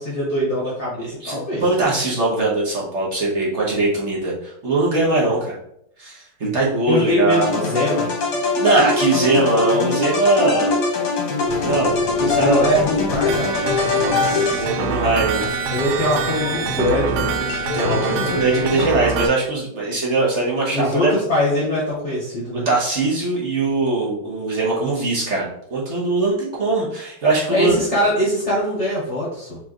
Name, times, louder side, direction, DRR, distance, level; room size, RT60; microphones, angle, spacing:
voice 1, 0.0-1.6 6.9-8.1 12.2-15.0 15.7-17.4 20.7-22.6 27.5-29.6, left 1 dB, 40° left, -7 dB, 1.3 m, -22 dB
voice 2, 1.0-5.5 6.0-7.5 8.6-10.7 11.6-11.9 12.2-12.7 14.2-15.5 17.7-21.1 22.6-27.7, right 2 dB, 40° right, -4 dB, 1.2 m, -21 dB
sound 1, 7.3-15.0, left 3 dB, 55° left, 1.4 m, -22 dB
sound 2, 11.5-19.0, left 5 dB, 75° left, 1.2 m, -31 dB
sound 3, 13.3-19.3, right 6 dB, 85° right, 0.9 m, -25 dB
4.6 x 3.8 x 3.0 m, 0.72 s
omnidirectional pair, 2.3 m